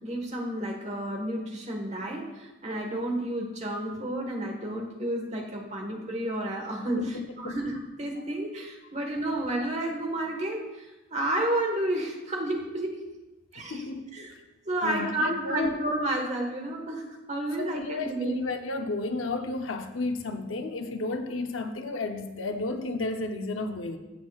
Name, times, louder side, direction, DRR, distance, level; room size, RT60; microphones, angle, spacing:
voice 1, 0.0-10.6 11.1-13.0 13.5-13.8 14.1-14.3 14.7-18.4, right 1 dB, 35° right, 1 dB, 1.5 m, -31 dB
voice 2, 7.0-7.6 13.6-14.3 14.8-15.8 17.6-24.0, left 3 dB, 85° left, 6 dB, 0.8 m, -32 dB
16.0 x 6.1 x 2.4 m, 1.1 s
head